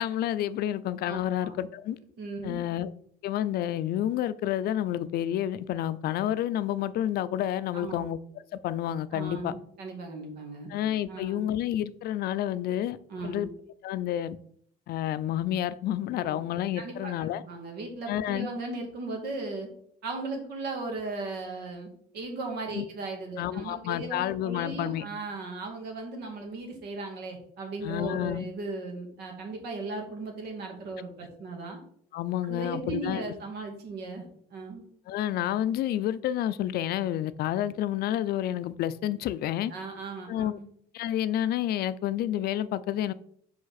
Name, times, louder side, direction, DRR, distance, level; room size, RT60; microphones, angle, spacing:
voice 1, 0.0-2.0 2.4-2.9 3.2-8.2 8.5-9.5 10.7-13.0 13.2-13.5 13.8-14.4 14.9-17.4 18.1-18.5 22.7-22.8 23.4-25.0 27.8-28.4 32.1-33.3 35.1-39.7 40.3-40.6 40.9-43.1, left 12 dB, 65° left, 15 dB, 0.4 m, -29 dB
voice 2, 1.0-1.6 2.2-2.6 7.7-8.0 9.1-10.7 11.1-11.5 13.1-13.4 16.2-16.4 16.8-19.7 20.0-21.9 22.1-31.8 32.5-34.2 34.5-34.8 39.7-40.6, right 3 dB, 75° right, 2 dB, 2.1 m, -37 dB
5.7 x 5.1 x 4.0 m, 0.63 s
cardioid pair, 110°, 17 cm